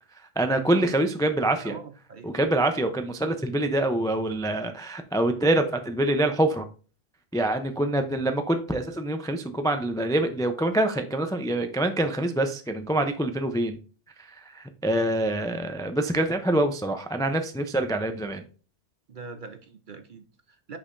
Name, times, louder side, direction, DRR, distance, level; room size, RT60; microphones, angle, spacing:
voice 1, 0.4-1.8 2.2-6.7 7.3-13.8 14.2-18.4, right 1 dB, 5° left, 0.3 m, -25 dB
voice 2, 1.4-2.3 19.1-20.8, right 4 dB, 50° right, 0.7 m, -43 dB
6.4 x 6.0 x 2.6 m
omnidirectional pair, 1.2 m